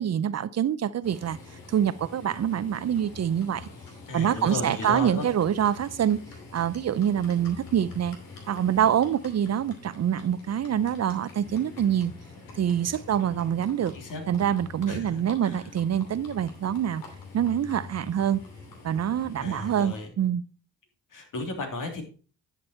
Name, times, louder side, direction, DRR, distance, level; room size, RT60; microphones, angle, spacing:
voice 1, 0.0-1.4 1.7-3.7 4.1-6.2 6.5-8.2 8.5-12.1 12.6-13.9 14.3-17.0 17.3-18.4 18.8-20.4, right 9 dB, 50° right, 0.7 m, -25 dB
Livestock farm animals working animals, 1.0-20.1, left 4 dB, 80° left, 2.8 m, -46 dB
voice 2, 4.1-5.3 13.9-14.2 14.9-15.6 19.4-20.1 21.1-22.0, left 2 dB, 60° left, 3.3 m, -34 dB
10.5 x 6.1 x 4.5 m
supercardioid pair, 55°, 35 cm